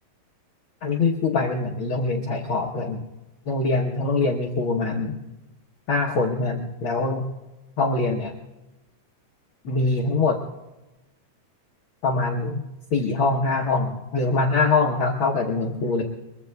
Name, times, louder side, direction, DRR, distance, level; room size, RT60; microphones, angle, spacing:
voice 1, 0.8-3.1 3.5-5.2 5.9-7.3 7.8-8.3 9.6-10.4 12.0-12.6 12.9-16.0, left 3 dB, 85° left, 2 dB, 1.1 m, -23 dB
23.0 x 22.5 x 2.3 m, 1.0 s
omnidirectional pair, 3.9 m